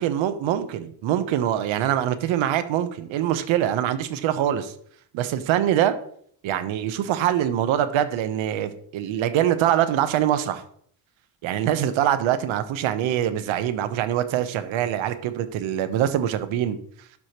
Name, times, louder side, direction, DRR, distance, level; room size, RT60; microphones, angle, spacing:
voice 1, 0.0-4.7 5.1-6.0 6.4-10.6 11.4-16.8, right 11 dB, 70° right, 10 dB, 0.9 m, -24 dB
11.5 x 4.7 x 2.9 m, 0.62 s
cardioid pair, 140°, 49 cm